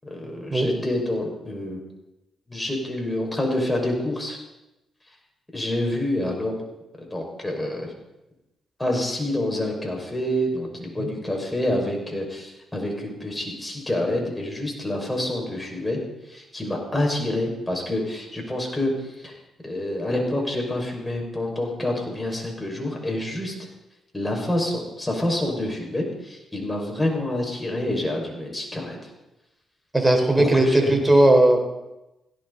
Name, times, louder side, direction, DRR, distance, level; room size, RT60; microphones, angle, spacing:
voice 1, 0.0-1.8 2.5-4.4 5.5-6.6 7.1-7.9 8.8-16.0 16.3-18.9 19.2-19.3 19.6-23.5 24.1-29.0 30.4-31.0, left 1 dB, 15° left, 1 dB, 5.9 m, -27 dB
voice 2, 29.9-31.6, right 1 dB, 15° right, 3 dB, 4.7 m, -17 dB
17.0 x 17.0 x 4.2 m, 0.96 s
supercardioid pair, 60°, 0 cm